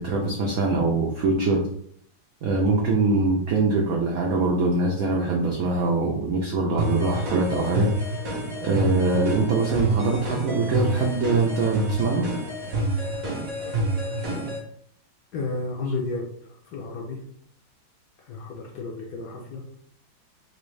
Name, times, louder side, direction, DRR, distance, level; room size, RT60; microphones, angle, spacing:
voice 1, 0.0-1.6 2.4-7.9 8.6-12.2, right 3 dB, 80° right, -1 dB, 0.8 m, -23 dB
sound 1, 6.8-14.6, right 1 dB, 55° right, 1.0 m, -28 dB
voice 2, 15.3-17.2 18.2-19.6, left 3 dB, 65° left, -1 dB, 1.0 m, -32 dB
3.8 x 2.6 x 3.1 m, 0.65 s
omnidirectional pair, 2.2 m